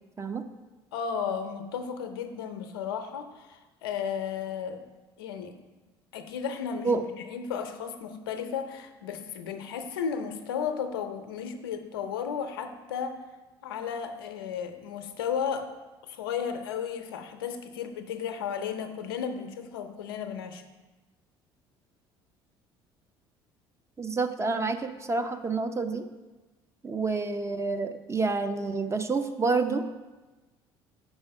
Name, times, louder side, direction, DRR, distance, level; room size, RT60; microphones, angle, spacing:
voice 1, 0.9-4.8 5.2-5.6 6.1-13.2 13.6-15.7 16.0-20.6, left 7 dB, 85° left, 8 dB, 0.6 m, -34 dB
voice 2, 24.0-26.0 26.8-29.8, right 3 dB, 25° right, 8 dB, 0.7 m, -28 dB
5.3 x 4.8 x 6.4 m, 1.2 s
hypercardioid pair, 60°, 12 cm